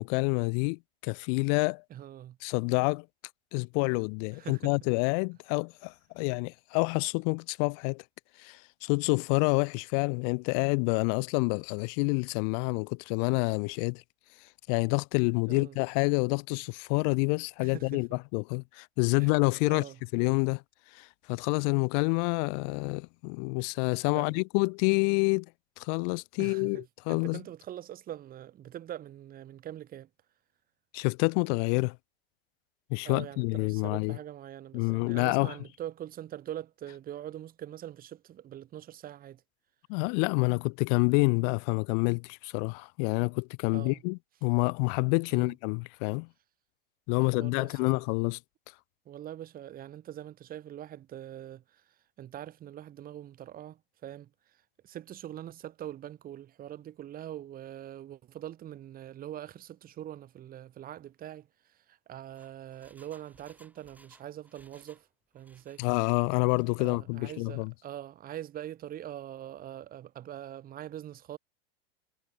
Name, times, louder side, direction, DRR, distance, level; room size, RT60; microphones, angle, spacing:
voice 1, 0.0-1.8 2.4-3.0 3.5-8.0 8.4-14.0 14.7-19.9 20.1-20.6 20.9-25.5 25.8-27.4 30.9-32.0 32.9-34.2 34.7-35.5 39.9-46.3 47.1-48.4 65.8-67.7, left 40 dB or more, 45° left, 0.6 m, -28 dB
voice 2, 1.9-2.4 4.3-4.7 15.5-15.8 17.6-18.2 19.2-19.3 19.7-20.0 24.1-24.4 26.4-30.1 33.0-39.4 43.7-44.0 45.3-45.5 47.2-48.0 49.1-51.8 52.2-54.3 54.8-65.1 65.3-65.8 66.8-71.4, right 11 dB, 30° right, 2.6 m, -43 dB
Engine, 62.3-65.1 65.3-66.0 66.4-66.9 67.3-67.4, right 2 dB, 5° right, 5.8 m, -61 dB
hypercardioid pair, 120°, 30 cm